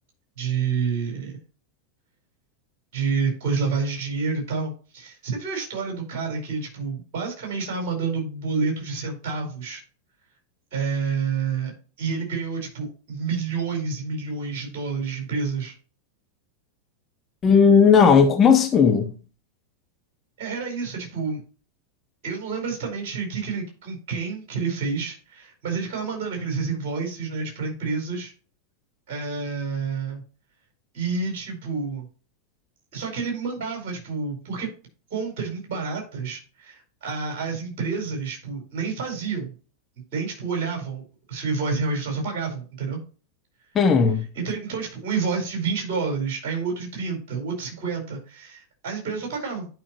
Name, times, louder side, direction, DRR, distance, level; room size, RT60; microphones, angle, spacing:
voice 1, 0.4-1.4 2.9-9.8 10.7-11.7 12.0-15.7 20.4-21.4 22.2-28.3 29.1-30.2 30.9-32.0 32.9-34.7 35.1-39.5 40.1-41.0 41.3-43.0 44.3-49.7, right 5 dB, 50° right, 5.1 m, -29 dB
voice 2, 17.4-19.1 43.7-44.2, left 6 dB, 25° left, 1.2 m, -16 dB
11.5 x 5.9 x 3.1 m
figure-of-eight pair, 90°, 0 cm